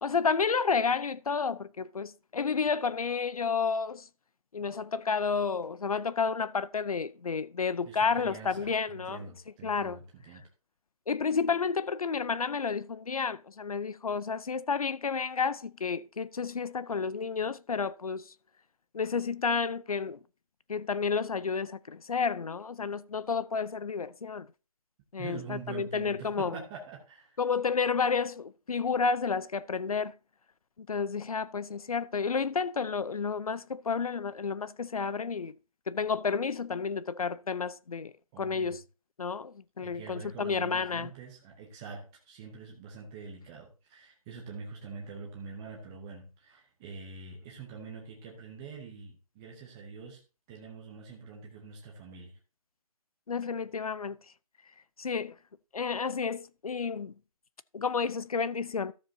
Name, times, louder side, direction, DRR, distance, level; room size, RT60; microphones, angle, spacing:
voice 1, 0.0-4.0 4.5-9.2 9.6-10.0 11.1-18.3 18.9-20.2 20.7-24.5 25.1-26.6 27.4-30.1 30.8-35.5 35.9-38.8 39.2-41.1 53.3-54.2 55.0-55.3 55.7-57.1 57.7-58.9, left 5 dB, 70° left, 0.6 m, -31 dB
voice 2, 7.9-10.5 25.2-27.4 38.3-38.8 39.8-50.2 50.5-52.4, right 5 dB, 10° right, 0.6 m, -45 dB
13.5 x 7.2 x 2.7 m
figure-of-eight pair, 165°, 19 cm